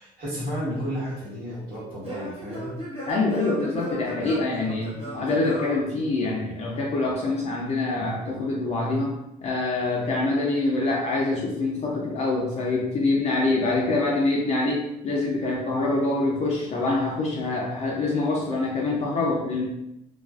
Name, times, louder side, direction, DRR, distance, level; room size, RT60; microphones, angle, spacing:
voice 1, 0.0-2.7, equal, 60° right, -7 dB, 1.4 m, -32 dB
Singing / Plucked string instrument, 0.8-6.6, right 1 dB, 35° right, 1.0 m, -37 dB
voice 2, 3.1-9.1 9.4-19.6, left 2 dB, 40° left, -2 dB, 0.5 m, -25 dB
2.3 x 2.3 x 2.3 m, 0.84 s
cardioid pair, 110°, 17 cm